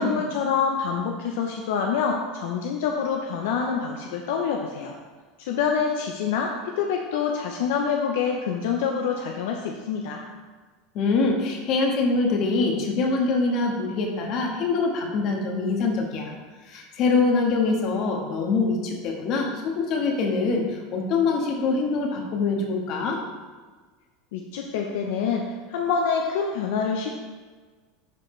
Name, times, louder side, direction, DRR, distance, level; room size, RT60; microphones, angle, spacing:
voice 1, 0.0-4.9 5.4-10.2 24.3-27.1, left 6 dB, 80° left, 1 dB, 0.7 m, -26 dB
voice 2, 10.9-16.3 16.7-23.2, left 3 dB, 50° left, 1 dB, 1.5 m, -24 dB
11.5 x 4.2 x 3.3 m, 1.4 s
supercardioid pair, 125°, 0 cm